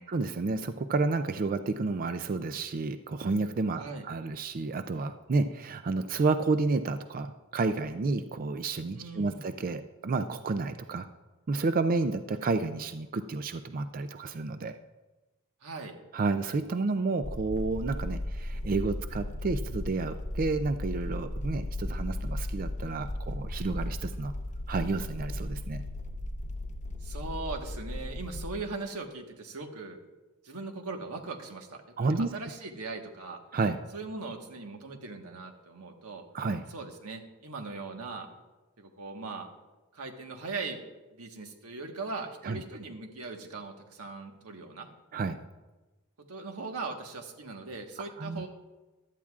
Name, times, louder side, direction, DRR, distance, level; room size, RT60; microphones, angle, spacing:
voice 1, 0.1-11.1 11.5-14.7 16.1-24.3 24.7-25.8 32.0-32.3 33.5-33.8 36.3-36.6 42.4-42.6 45.1-45.4 48.2-48.4, right 3 dB, 40° right, 10 dB, 0.4 m, -30 dB
voice 2, 9.0-9.5 15.6-16.0 27.0-30.0 30.4-33.4 33.9-36.2 36.7-38.3 38.8-39.5 39.9-40.8 41.1-44.9 46.3-48.5, right 3 dB, 85° right, 4 dB, 1.4 m, -39 dB
sound 1, 17.2-28.5, left 1 dB, 35° left, 0.8 m, -36 dB
16.0 x 11.5 x 2.4 m, 1.1 s
head